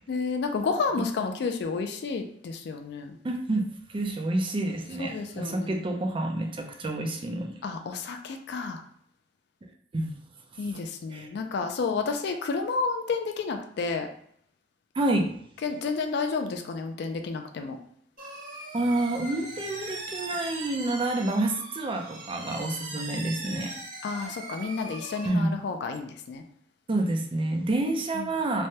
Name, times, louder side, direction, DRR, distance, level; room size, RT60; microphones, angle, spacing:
voice 1, 0.1-3.2 5.0-5.8 7.6-8.8 10.6-14.1 15.6-17.8 24.0-26.4 28.2-28.3, left 4 dB, 65° left, 5 dB, 0.3 m, -31 dB
voice 2, 3.2-7.5 9.9-10.1 11.1-11.3 15.0-15.3 18.7-23.7 24.1-24.3 25.2-25.5 26.9-28.7, right 2 dB, 30° right, 2 dB, 0.4 m, -28 dB
sound 1, 18.2-25.3, right 2 dB, 50° right, 1.1 m, -40 dB
3.2 x 2.2 x 2.7 m, 0.66 s
head